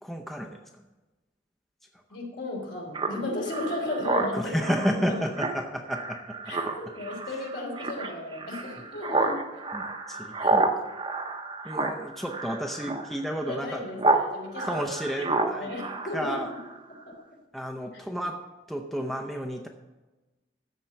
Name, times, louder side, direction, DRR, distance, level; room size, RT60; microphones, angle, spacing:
voice 1, 0.0-0.8 4.3-6.4 7.3-7.4 9.7-10.9 11.6-13.9 14.6-15.7 16.1-16.5 17.5-18.4 18.7-19.7, equal, ahead, 2 dB, 0.6 m, -32 dB
voice 2, 2.1-4.7 5.1-5.2 6.4-9.6 10.4-10.5 13.4-14.9 15.2-16.6 17.0-17.2, left 1 dB, 70° left, -1 dB, 3.3 m, -35 dB
Speech synthesizer, 2.9-14.3 14.5-16.8, right 3 dB, 25° right, 0.8 m, -30 dB
13.5 x 4.5 x 7.4 m, 1.1 s
head